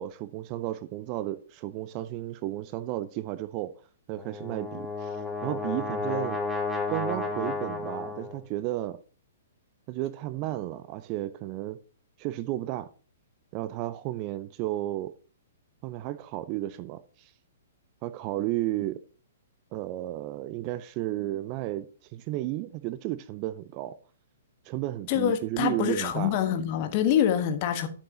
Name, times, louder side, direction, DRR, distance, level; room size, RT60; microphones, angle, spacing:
voice 1, 0.0-3.7 4.1-5.2 5.4-6.4 6.9-9.0 9.9-11.8 12.2-12.9 13.5-15.1 15.8-17.3 18.0-19.0 19.7-24.0 24.7-26.4, right 15 dB, 35° right, 0.5 m, -33 dB
Brass instrument, 4.2-8.4, left 3 dB, 5° left, 1.4 m, -32 dB
voice 2, 25.1-27.9, left 9 dB, 40° left, 1.4 m, -25 dB
12.5 x 6.9 x 2.9 m
figure-of-eight pair, 115°, 0 cm